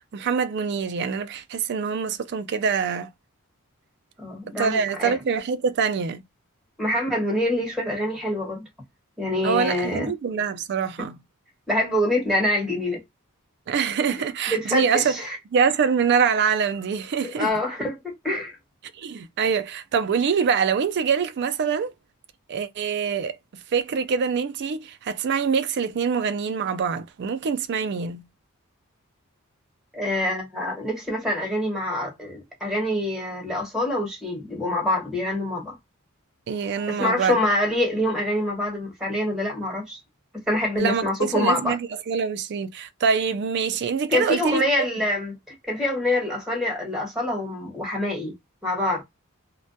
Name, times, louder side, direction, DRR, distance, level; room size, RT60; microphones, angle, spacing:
voice 1, 0.1-3.1 4.6-6.2 9.4-11.2 13.7-15.2 15.5-17.5 19.0-21.9 22.5-28.2 36.5-37.4 40.8-44.9, right 6 dB, 50° right, 0.3 m, -24 dB
voice 2, 4.2-5.2 6.8-8.6 9.2-10.1 11.7-13.0 14.0-15.4 17.2-18.6 29.9-35.8 36.9-40.0 40.5-41.8 44.1-48.3 48.6-49.0, left 1 dB, ahead, 1.1 m, -26 dB
2.2 x 2.1 x 2.6 m
head